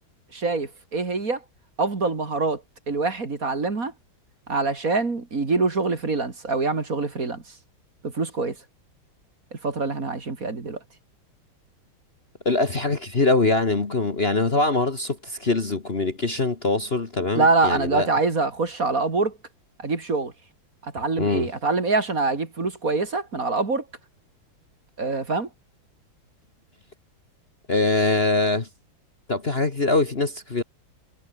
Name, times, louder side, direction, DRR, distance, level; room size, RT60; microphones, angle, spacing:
voice 1, 0.3-1.4 1.8-2.6 2.9-3.9 4.5-7.4 8.0-8.6 9.5-10.8 17.3-19.4 19.8-20.3 20.8-23.8 25.0-25.5, right 3 dB, 40° right, 3.1 m, -25 dB
voice 2, 12.5-18.1 21.2-21.5 27.7-28.7 29.3-30.6, left 3 dB, 30° left, 1.8 m, -23 dB
omnidirectional pair, 2.2 m